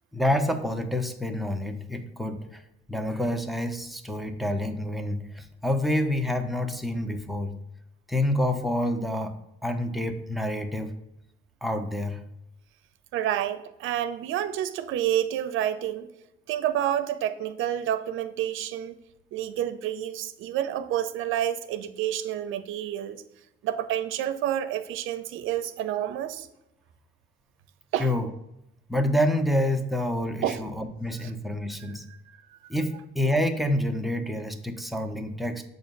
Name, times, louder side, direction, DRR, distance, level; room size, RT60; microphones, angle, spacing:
voice 1, 0.1-2.6 2.9-7.6 8.1-9.4 9.6-10.9 11.6-12.2 28.0-28.3 28.9-32.0 32.7-35.6, left 1 dB, ahead, 5 dB, 0.6 m, -28 dB
voice 2, 13.1-16.1 16.5-18.9 19.3-23.2 23.6-26.5 27.9-28.1 30.4-30.6 31.2-31.3 31.8-32.2, right 11 dB, 85° right, 12 dB, 0.5 m, -29 dB
6.9 x 2.7 x 5.1 m, 0.86 s
cardioid pair, 90°, 20 cm